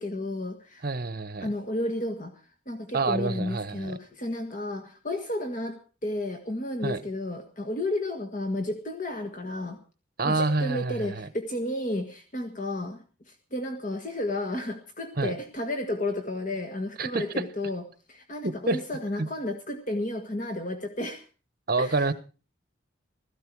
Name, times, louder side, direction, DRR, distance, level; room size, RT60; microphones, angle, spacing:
voice 1, 0.0-0.8 1.4-2.3 2.6-9.8 10.2-17.8 18.1-21.2 21.8-22.1, left 1 dB, 40° left, 6 dB, 1.7 m, -32 dB
voice 2, 0.8-1.5 2.9-4.0 6.8-7.0 10.2-11.3 15.2-15.3 17.0-17.4 18.4-18.8 19.2-19.3 21.7-22.1, right 3 dB, 50° right, 15 dB, 1.1 m, -27 dB
16.0 x 14.5 x 4.7 m, 0.36 s
head